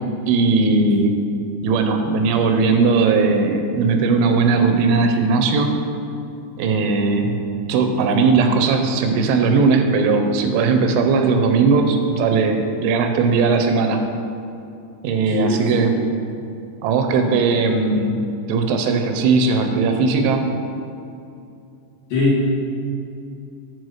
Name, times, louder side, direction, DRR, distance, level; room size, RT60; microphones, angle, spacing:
voice 1, 0.3-1.2 1.6-5.7 6.6-7.4 7.7-14.0 15.0-15.9 16.8-18.2 18.5-20.5, right 4 dB, 85° right, 5 dB, 3.1 m, -18 dB
voice 2, 15.3-15.8 22.1-22.5, left 2 dB, 60° left, -8 dB, 2.8 m, -20 dB
8.0 x 4.7 x 6.3 m, 2.6 s
omnidirectional pair, 5.2 m